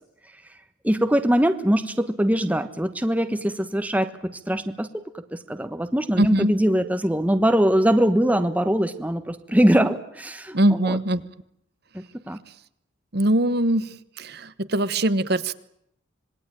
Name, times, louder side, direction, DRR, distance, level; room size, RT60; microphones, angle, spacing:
voice 1, 0.8-5.0 5.3-11.0 11.9-12.4, equal, 10° right, 9 dB, 1.2 m, -22 dB
voice 2, 6.2-6.5 10.5-11.2 13.1-13.9 14.2-15.5, right 1 dB, 50° right, 14 dB, 1.1 m, -21 dB
26.5 x 20.5 x 9.0 m, 0.75 s
head